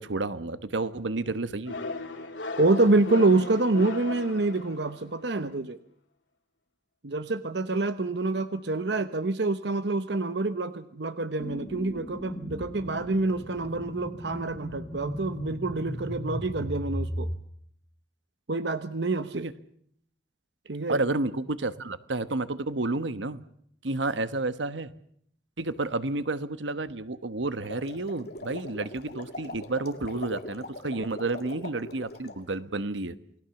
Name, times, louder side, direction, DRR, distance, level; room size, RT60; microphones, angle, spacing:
voice 1, 0.0-1.8 19.3-19.5 20.9-23.4 23.8-24.9 25.6-33.2, right 2 dB, 85° right, 13 dB, 1.2 m, -30 dB
sound 1, 1.7-5.2, left 2 dB, 85° left, 2.8 m, -37 dB
voice 2, 2.6-5.8 7.0-17.3 18.5-19.5 20.7-21.0, right 2 dB, 65° right, 11 dB, 0.9 m, -27 dB
sound 2, 11.4-17.4, equal, 20° left, 1.9 m, -36 dB
sound 3, 27.5-32.4, left 2 dB, 60° left, 2.3 m, -41 dB
28.5 x 19.5 x 7.1 m, 0.67 s
head